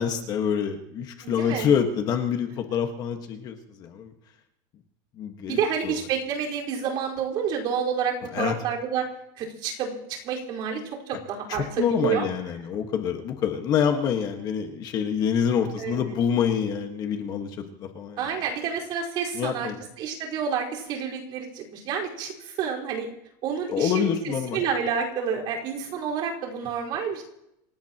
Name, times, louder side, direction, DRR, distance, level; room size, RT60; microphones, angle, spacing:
voice 1, 0.0-4.1 5.2-5.6 5.8-6.0 8.3-8.5 11.5-18.2 19.3-19.8 23.7-24.6, left 7 dB, 35° left, 5 dB, 1.6 m, -26 dB
voice 2, 1.2-1.7 5.5-9.1 9.4-10.8 11.1-12.3 15.8-16.0 18.2-19.7 20.0-23.1 23.4-27.2, right 7 dB, 45° right, -2 dB, 4.7 m, -29 dB
27.0 x 17.5 x 3.0 m, 0.79 s
supercardioid pair, 165°, 11 cm